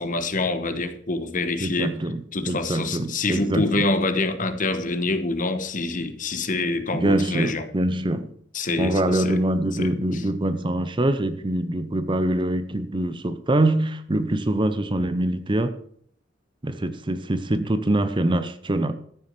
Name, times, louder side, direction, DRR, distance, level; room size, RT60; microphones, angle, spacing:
voice 1, 0.0-1.9 2.3-7.6 8.5-9.4 9.7-10.2, left 2 dB, 45° left, 1.1 m, -26 dB
voice 2, 1.6-3.9 6.9-8.3 8.8-15.8 16.6-18.9, right 1 dB, 25° right, 0.7 m, -24 dB
13.5 x 6.4 x 6.7 m
head